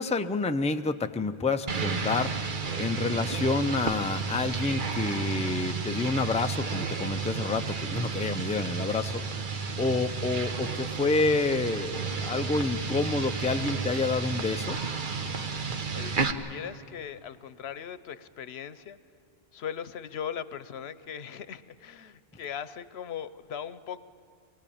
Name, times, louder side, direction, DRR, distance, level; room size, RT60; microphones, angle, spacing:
voice 1, 0.0-2.5 2.8-14.8, left 3 dB, 10° left, 8 dB, 0.4 m, -29 dB
sound 1, 1.7-16.3, right 5 dB, 55° right, 1.1 m, -32 dB
voice 2, 15.9-19.0 19.5-24.0, left 8 dB, 85° left, 14 dB, 1.0 m, -39 dB
23.5 x 19.5 x 8.7 m, 2.4 s
omnidirectional pair, 1.0 m